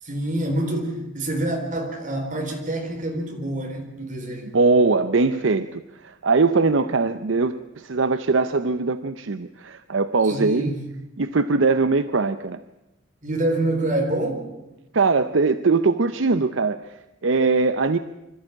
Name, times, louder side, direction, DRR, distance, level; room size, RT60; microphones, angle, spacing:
voice 1, 0.0-4.6 10.2-10.8 13.2-14.4, right 1 dB, 40° right, 2 dB, 4.3 m, -26 dB
voice 2, 4.5-10.7 11.2-12.6 14.9-18.0, right 4 dB, 65° right, 12 dB, 0.7 m, -21 dB
25.5 x 13.5 x 8.7 m, 0.94 s
head